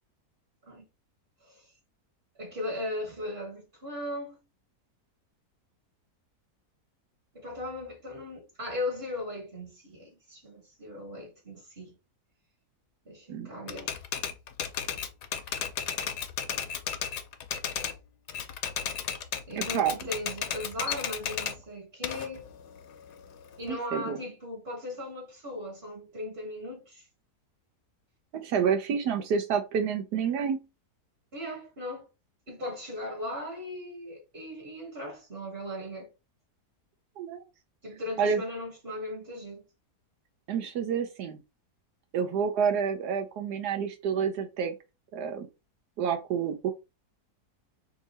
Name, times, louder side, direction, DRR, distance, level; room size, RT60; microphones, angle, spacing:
voice 1, 2.3-4.4 7.3-11.9 13.0-14.0 19.5-22.5 23.6-27.0 31.3-32.1 32.5-36.1 37.8-39.6, left 1 dB, 35° right, 1.7 m, -38 dB
Typewriter, 13.7-18.0 18.3-21.6 22.0-23.7, left 8 dB, 90° left, 1.3 m, -34 dB
voice 2, 19.6-19.9 23.9-24.2 28.3-30.6 37.2-37.4 38.2-38.4 40.5-41.4 42.1-44.7 45.1-45.5 46.0-46.7, right 7 dB, 85° right, 1.3 m, -28 dB
3.6 x 2.8 x 4.1 m
omnidirectional pair, 1.7 m